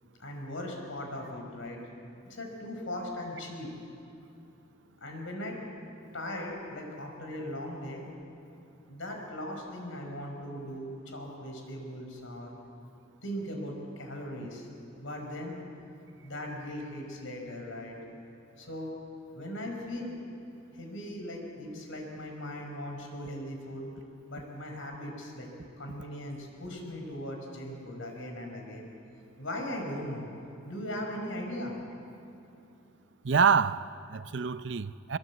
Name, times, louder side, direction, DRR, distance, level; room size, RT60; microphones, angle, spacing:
voice 1, 0.2-1.9 2.2-3.7 5.0-5.6 6.1-8.1 8.9-12.5 13.2-14.7 15.0-15.6 16.2-18.0 18.6-18.9 19.3-20.2 20.7-23.9 24.3-25.5 25.8-28.9 29.4-30.3 30.6-31.8, left 1 dB, 85° left, 5.1 m, -39 dB
voice 2, 33.2-35.2, right 6 dB, 65° right, 0.6 m, -26 dB
23.0 x 21.5 x 8.2 m
head